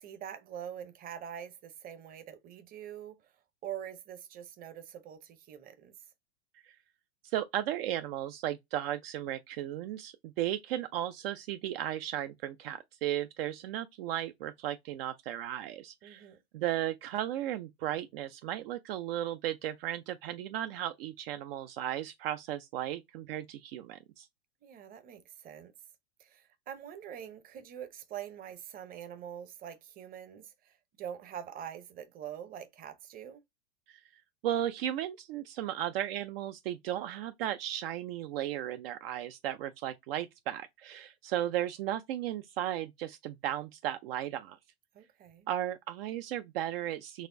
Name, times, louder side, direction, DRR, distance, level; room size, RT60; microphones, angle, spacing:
voice 1, 0.0-3.3 3.6-5.9 16.0-16.4 24.6-25.7 26.2-33.4 44.9-45.5, right 9 dB, 25° right, 0.7 m, -44 dB
voice 2, 7.2-16.3 16.5-24.3 33.9-34.0 34.4-44.6 45.5-47.3, right 12 dB, 60° right, 0.5 m, -35 dB
4.1 x 2.4 x 2.6 m
hypercardioid pair, 115°, 33 cm